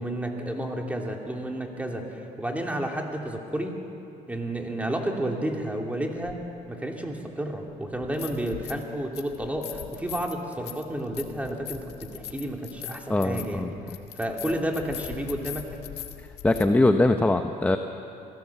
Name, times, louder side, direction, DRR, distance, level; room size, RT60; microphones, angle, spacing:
voice 1, 0.0-3.7 4.3-6.4 6.7-15.7, right 1 dB, 10° right, 1 dB, 2.8 m, -31 dB
sound 1, 6.3-6.4 7.9-8.9 9.1-16.7, left 12 dB, 80° left, 1.6 m, -40 dB
voice 2, 13.1-13.7 16.4-17.8, left 2 dB, 10° left, 7 dB, 0.8 m, -21 dB
26.0 x 16.5 x 7.2 m, 2.7 s
cardioid pair, 110°, 17 cm